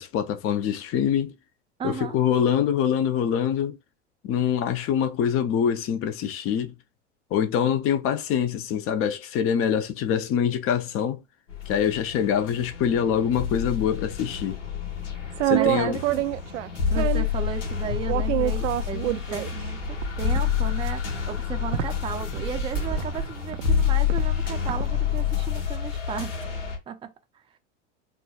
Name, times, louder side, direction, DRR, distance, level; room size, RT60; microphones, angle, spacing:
voice 1, 0.0-1.3 1.8-3.8 4.2-6.7 7.3-11.2 11.7-14.6 15.4-16.0, left 8 dB, 35° left, 0.6 m, -24 dB
voice 2, 1.8-2.2 15.5-16.2 16.9-26.3 26.9-27.1, right 7 dB, 15° right, 0.5 m, -34 dB
sound 1, 11.5-26.8, left 8 dB, 75° left, 1.4 m, -28 dB
sound 2, 15.2-17.4 18.1-25.1, right 12 dB, 70° right, 0.5 m, -28 dB
4.3 x 2.3 x 2.3 m
hypercardioid pair, 90°, 38 cm